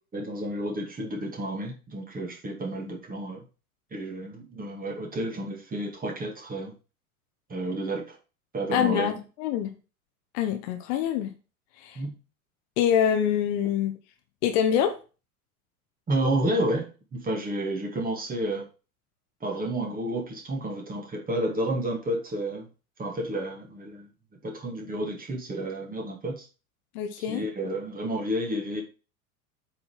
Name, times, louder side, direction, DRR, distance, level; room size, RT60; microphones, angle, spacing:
voice 1, 0.1-3.4 3.9-6.7 7.5-8.2 8.5-9.2 12.0-12.1 16.1-18.7 19.4-22.7 23.0-24.1 24.4-26.5 27.3-28.8, right 1 dB, 20° right, 2.3 m, -30 dB
voice 2, 8.7-9.7 10.3-11.3 11.8-12.0 12.8-14.0 14.4-15.0 26.9-27.4, left 9 dB, 45° left, 1.3 m, -25 dB
8.4 x 4.3 x 5.6 m
figure-of-eight pair, 80°, 44 cm